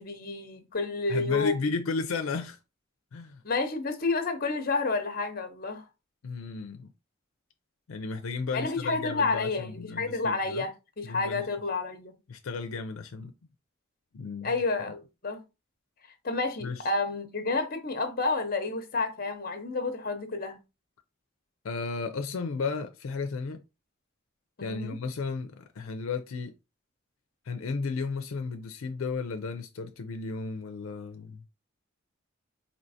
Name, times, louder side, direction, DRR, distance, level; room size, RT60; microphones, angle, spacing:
voice 1, 0.0-1.7 3.4-5.9 8.5-12.1 14.4-15.4 16.2-20.6 24.6-25.0, left 3 dB, 45° left, 0.7 m, -30 dB
voice 2, 1.1-2.6 3.1-3.4 6.2-6.9 7.9-10.7 11.0-11.4 12.3-13.3 14.1-14.5 16.6-16.9 21.6-23.6 24.6-26.5 27.5-31.4, left 4 dB, 80° left, 0.4 m, -34 dB
4.4 x 2.8 x 2.7 m
head